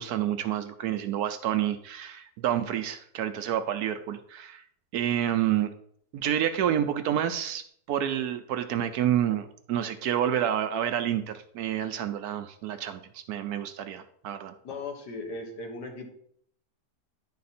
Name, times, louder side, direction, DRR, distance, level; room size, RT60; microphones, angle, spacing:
voice 1, 0.0-4.6 4.9-5.7 6.1-14.5, right 10 dB, 70° right, 9 dB, 1.0 m, -29 dB
voice 2, 14.6-16.1, left 3 dB, 70° left, 2 dB, 1.8 m, -37 dB
10.5 x 4.2 x 4.2 m, 0.65 s
omnidirectional pair, 1.8 m